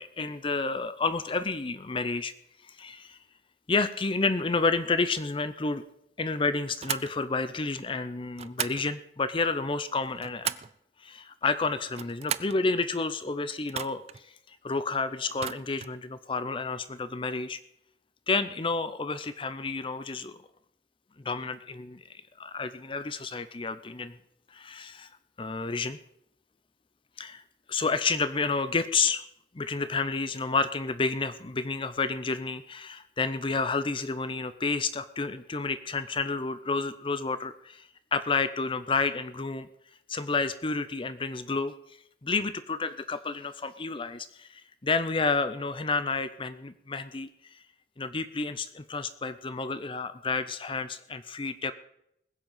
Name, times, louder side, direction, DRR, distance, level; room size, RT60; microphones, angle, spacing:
voice 1, 0.0-2.3 2.6-3.2 3.7-5.8 6.2-10.5 11.0-17.6 18.3-20.4 21.2-24.1 24.5-25.1 25.4-26.0 27.2-27.4 27.7-29.2 29.5-39.7 40.1-47.6 48.0-51.7, left 4 dB, 30° left, 13 dB, 0.6 m, -30 dB
sound 1, 6.8-7.1 8.4-8.9 9.9-10.8 11.8-12.6 13.7-14.2 15.3-16.0, right 9 dB, 35° right, 0.4 m, -35 dB
20.5 x 7.9 x 5.5 m, 0.77 s
head